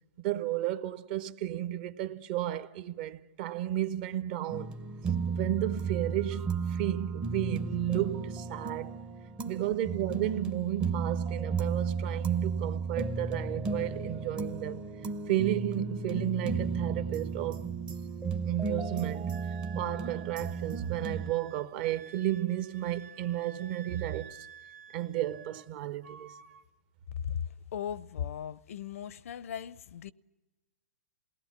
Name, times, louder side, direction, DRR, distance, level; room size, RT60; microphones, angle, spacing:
voice 1, 0.2-4.7 5.3-8.9 9.4-14.8 15.3-17.6 18.5-19.2 19.7-24.5 24.9-26.4, right 13 dB, 40° right, 1.2 m, -33 dB
sound 1, 4.5-21.3, right 5 dB, 15° right, 0.8 m, -34 dB
Wind instrument woodwind instrument, 19.3-25.7 26.0-26.6, right 7 dB, 80° right, 2.7 m, -52 dB
voice 2, 27.7-30.1, left 9 dB, 65° left, 0.7 m, -37 dB
28.5 x 19.0 x 7.3 m
hypercardioid pair, 150°, 8 cm